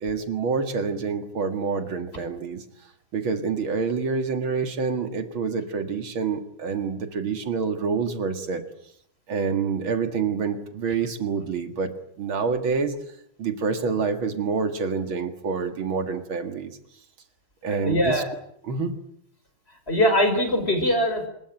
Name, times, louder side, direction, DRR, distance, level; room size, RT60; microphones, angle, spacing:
voice 1, 0.0-2.6 3.1-8.6 9.3-11.9 12.2-13.0 13.4-16.7 17.6-18.2 18.6-18.9, right 5 dB, 75° right, 8 dB, 2.7 m, -27 dB
voice 2, 17.7-18.3 19.9-21.3, equal, 30° left, 7 dB, 5.4 m, -22 dB
26.5 x 21.5 x 9.1 m, 0.71 s
omnidirectional pair, 2.3 m